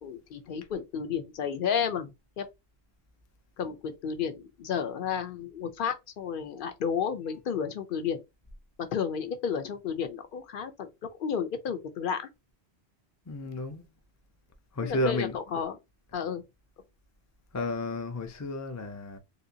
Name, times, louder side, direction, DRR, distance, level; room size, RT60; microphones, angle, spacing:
voice 1, 0.0-2.5 3.6-8.2 8.8-12.3 14.8-15.8 16.1-16.4, left 7 dB, 60° left, 0.7 m, -32 dB
voice 2, 13.3-13.8 14.7-15.4 17.5-19.2, left 1 dB, 25° left, 0.4 m, -32 dB
3.3 x 2.8 x 2.7 m
omnidirectional pair, 1.1 m